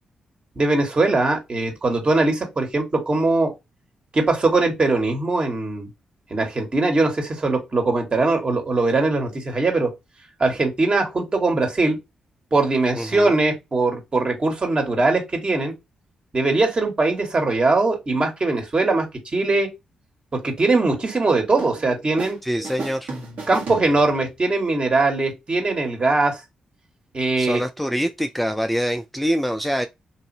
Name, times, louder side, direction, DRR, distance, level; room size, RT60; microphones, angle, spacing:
voice 1, 0.5-3.5 4.1-5.9 6.3-9.9 10.4-12.0 12.5-15.7 16.3-19.1 19.3-19.7 20.3-22.4 23.5-26.4 27.1-27.6, right 3 dB, 40° right, 1.5 m, -21 dB
voice 2, 12.9-13.3 22.4-23.1 27.4-29.9, equal, 5° left, 0.4 m, -25 dB
sound 1, 21.6-22.4 22.6-24.4, right 3 dB, 65° right, 1.3 m, -35 dB
3.0 x 2.6 x 2.7 m
hypercardioid pair, 45°, 3 cm